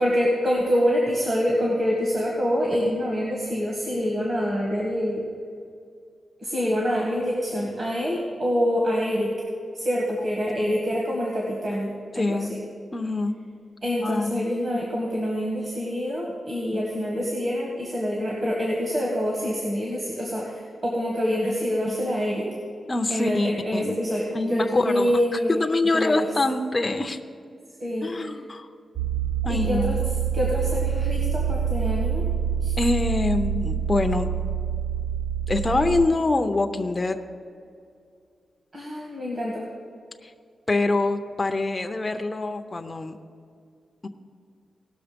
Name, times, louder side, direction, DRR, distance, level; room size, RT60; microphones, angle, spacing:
voice 1, 0.0-5.2 6.4-9.3 9.7-12.6 13.8-22.5 23.1-26.3 27.8-28.3 29.5-30.0 30.3-32.2 32.6-32.7 38.7-39.7, equal, 40° right, -3 dB, 1.9 m, -26 dB
voice 2, 12.1-12.5 12.9-13.4 14.0-14.4 14.7-14.8 22.9-23.9 24.3-25.2 25.6-27.2 28.0-28.7 29.4-30.0 32.8-34.3 35.5-37.2 40.7-43.2 44.0-44.1, left 2 dB, 20° left, 5 dB, 0.6 m, -25 dB
sound 1, 29.0-36.1, right 7 dB, 65° right, 0.6 m, -26 dB
17.5 x 6.4 x 5.2 m, 2.3 s
wide cardioid pair, 175°, 0 cm